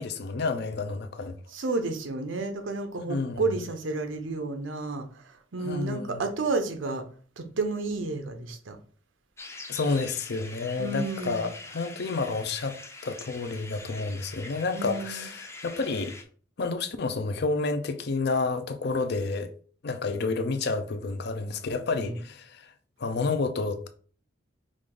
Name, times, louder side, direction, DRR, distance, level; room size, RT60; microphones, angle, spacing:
voice 1, 0.0-1.4 3.1-3.6 5.6-6.3 9.7-12.8 13.0-16.1 16.6-19.5 19.8-22.7 23.0-23.9, left 3 dB, 60° left, 0.5 m, -30 dB
voice 2, 1.5-5.1 5.5-7.0 7.4-8.8 10.8-11.5 14.7-15.3 22.0-22.2, right 3 dB, 85° right, 0.7 m, -31 dB
sound 1, 9.4-16.2, left 2 dB, 15° left, 0.5 m, -44 dB
5.0 x 2.5 x 3.7 m
head